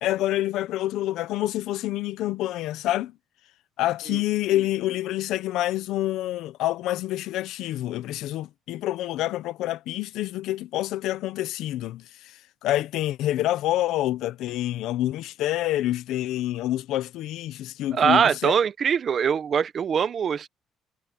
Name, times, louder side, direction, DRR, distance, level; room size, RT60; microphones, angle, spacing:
voice 1, 0.0-3.1 3.8-12.3 12.6-18.5, left 14 dB, 90° left, 0.9 m, -27 dB
voice 2, 17.9-20.5, right 7 dB, 45° right, 1.0 m, -22 dB
cardioid pair, 135°, 0 cm